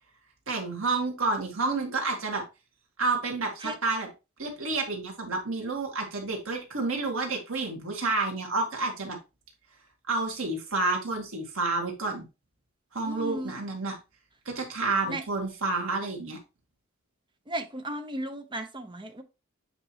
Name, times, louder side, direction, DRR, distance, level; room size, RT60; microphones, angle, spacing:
voice 1, 0.5-2.4 3.0-4.1 4.4-9.2 10.1-12.3 12.9-13.9 14.5-16.4, right 3 dB, 75° right, 2.0 m, -29 dB
voice 2, 13.0-13.6 15.1-15.2 17.5-19.2, right 1 dB, 25° right, 0.9 m, -35 dB
8.2 x 4.5 x 2.9 m
head